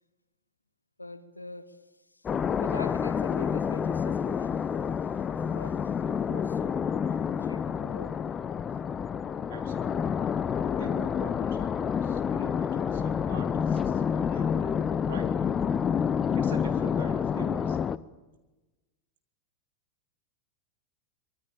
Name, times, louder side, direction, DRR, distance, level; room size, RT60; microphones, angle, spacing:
voice 1, 1.0-4.7 5.0-6.8 7.1-8.2, left 2 dB, 90° left, 1.3 m, -45 dB
sound 1, 2.3-18.0, left 7 dB, 25° left, 0.8 m, -28 dB
voice 2, 9.5-10.1 10.7-14.8 15.1-15.3 16.3-17.9, right 5 dB, 65° right, 4.0 m, -45 dB
25.0 x 24.0 x 7.2 m
figure-of-eight pair, 90°, 0 cm